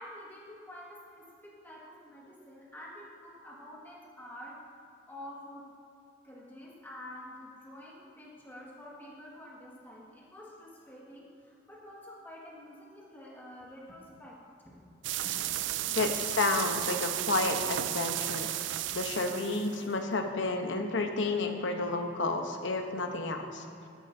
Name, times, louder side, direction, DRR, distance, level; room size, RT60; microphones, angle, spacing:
voice 1, 0.0-4.6 5.1-5.7 6.2-14.4 14.6-14.9 15.2-15.4 15.9-16.0, left 1 dB, 10° left, -5 dB, 1.8 m, -48 dB
sound 1, 15.0-19.8, right 13 dB, 70° right, 0.3 m, -33 dB
voice 2, 15.9-23.7, left 3 dB, 70° left, 5 dB, 0.9 m, -31 dB
12.5 x 11.0 x 2.7 m, 2.7 s
head